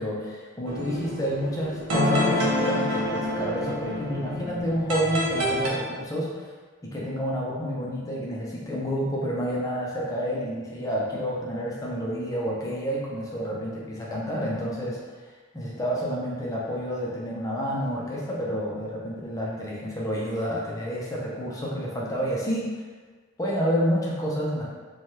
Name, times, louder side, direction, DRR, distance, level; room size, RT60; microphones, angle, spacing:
voice 1, 0.0-6.5 6.8-15.0 15.5-22.7 23.4-24.7, equal, 15° left, -4 dB, 0.4 m, -29 dB
sound 1, 0.7-5.7, left 1 dB, 85° right, 0.6 m, -27 dB
3.1 x 2.2 x 2.7 m, 1.4 s
head